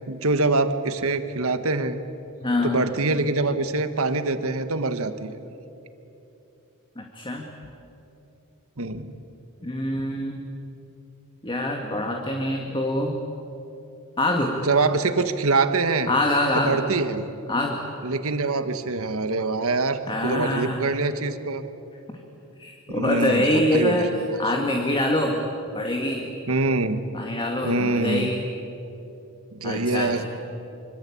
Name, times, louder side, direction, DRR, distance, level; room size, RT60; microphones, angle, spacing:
voice 1, 0.1-2.0 2.6-5.4 8.8-9.1 14.6-16.1 16.5-17.2 18.0-21.7 22.9-24.1 26.5-27.0 27.6-28.3 29.5-30.2, right 3 dB, 65° right, 9 dB, 1.6 m, -24 dB
voice 2, 2.4-2.9 7.0-7.5 9.6-10.4 11.4-13.2 14.2-14.6 16.1-16.8 17.5-17.8 20.1-21.0 22.6-24.1 24.4-25.4 25.7-26.3 27.1-28.5 29.6-30.2, left 1 dB, 20° left, 2 dB, 2.0 m, -25 dB
25.5 x 25.0 x 8.6 m, 2.9 s
head